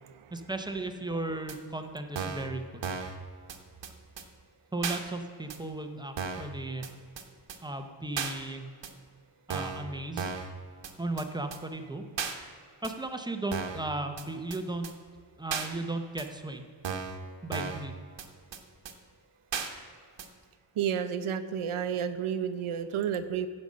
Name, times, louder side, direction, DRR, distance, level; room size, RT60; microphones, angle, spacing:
voice 1, 0.3-2.8 4.7-6.9 7.6-8.7 9.5-10.3 11.0-12.0 12.8-14.9 15.4-16.7 17.4-18.1, right 2 dB, 10° right, 6 dB, 0.7 m, -35 dB
sound 1, 1.5-1.6 2.2-2.5 2.8-3.2 3.5-3.6 3.8-3.9 4.2-4.3 4.8-5.0 5.5-5.6 6.2-6.5 6.8-6.9 7.2-7.3 7.5-7.6 8.2-8.3 8.8-8.9 9.5-9.8 10.2-10.5 10.8-10.9 11.2-11.3 11.5-11.6 12.2-12.3 12.8-12.9 13.5-13.8 14.2-14.3 14.5-14.6 14.8-14.9 15.5-15.7 16.2-16.3 16.8-17.2 17.5-17.8 18.2-18.3 18.5-18.6 18.9-19.0 19.5-19.7 20.2-20.3, right 6 dB, 60° right, 1.1 m, -34 dB
voice 2, 20.8-23.5, right 8 dB, 80° right, 10 dB, 0.9 m, -31 dB
15.0 x 5.4 x 6.3 m, 2.1 s
wide cardioid pair, 160°, 49 cm